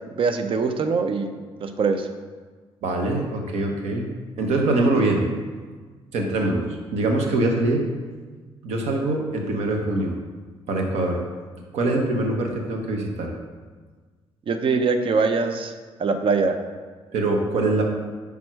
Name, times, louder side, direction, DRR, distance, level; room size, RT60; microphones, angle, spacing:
voice 1, 0.2-1.3 1.6-2.1 14.5-15.7 16.0-16.6, right 4 dB, 55° right, 8 dB, 0.6 m, -22 dB
voice 2, 2.8-4.0 4.4-5.2 6.1-7.8 8.6-10.1 10.7-11.2 11.7-13.3 17.1-17.9, right 2 dB, 80° right, 2 dB, 1.0 m, -23 dB
6.0 x 3.6 x 4.6 m, 1.5 s
supercardioid pair, 70°, 11 cm